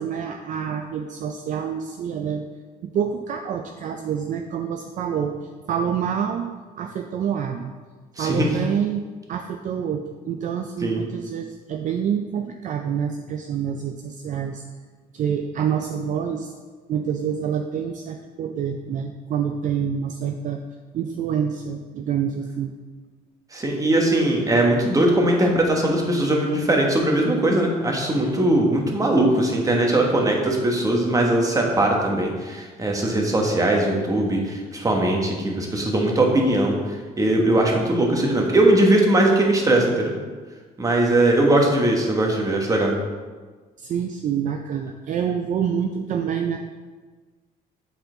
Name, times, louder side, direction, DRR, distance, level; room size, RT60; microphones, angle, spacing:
voice 1, 0.0-2.5 2.8-5.4 5.7-7.7 8.2-9.0 9.3-14.6 15.1-16.5 16.9-20.6 20.9-22.7 43.8-46.6, right 8 dB, 50° right, 5 dB, 0.4 m, -27 dB
voice 2, 8.2-8.5 10.8-11.0 23.5-40.1 40.8-42.9, right 1 dB, 20° right, 0 dB, 1.3 m, -20 dB
8.0 x 4.3 x 3.9 m, 1.4 s
cardioid pair, 110°, 17 cm